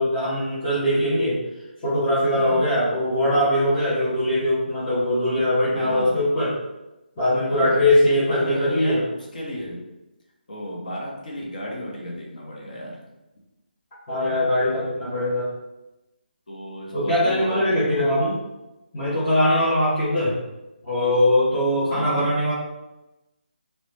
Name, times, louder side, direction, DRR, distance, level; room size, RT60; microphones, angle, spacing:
voice 1, 0.0-1.4 1.8-6.5 7.2-9.0 14.1-15.5 16.9-18.4 18.9-20.3 20.8-22.5, left 1 dB, 10° left, -12 dB, 0.5 m, -21 dB
voice 2, 2.4-2.7 5.7-6.2 7.5-7.8 8.3-9.8 10.5-13.0 16.5-18.1 21.9-22.3, equal, 50° left, -2 dB, 0.7 m, -34 dB
2.9 x 2.0 x 3.1 m, 0.98 s
hypercardioid pair, 175°, 6 cm